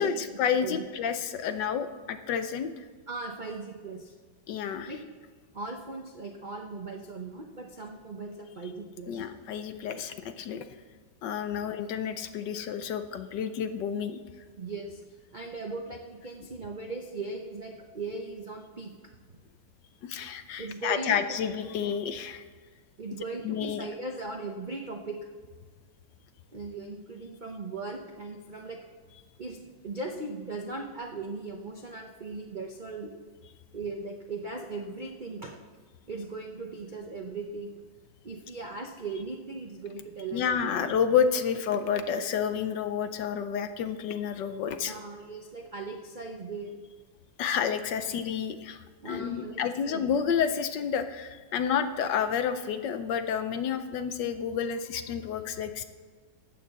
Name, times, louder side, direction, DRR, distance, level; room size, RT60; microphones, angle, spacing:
voice 1, 0.0-2.8 4.5-4.9 9.1-10.7 11.2-14.2 20.0-22.4 23.4-23.9 40.3-44.9 47.4-55.8, left 7 dB, 70° left, 10 dB, 1.2 m, -30 dB
voice 2, 3.1-4.1 4.9-5.0 5.5-9.3 14.6-15.0 15.3-18.9 20.6-21.7 23.0-25.2 26.5-28.8 29.4-33.1 33.7-35.6 36.1-37.8 38.2-40.9 44.9-46.7 49.0-50.1, right 3 dB, 60° right, 2 dB, 0.5 m, -38 dB
13.5 x 8.7 x 4.1 m, 1.5 s
omnidirectional pair, 2.2 m